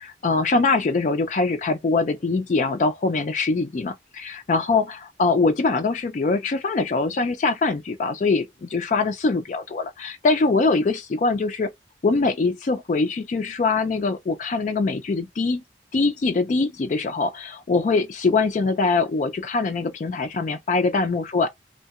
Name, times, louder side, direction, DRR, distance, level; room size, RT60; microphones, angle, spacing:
voice 1, 0.0-11.7 12.0-15.6 15.9-21.5, left 3 dB, 45° left, 0.3 m, -23 dB
2.7 x 2.1 x 2.3 m
head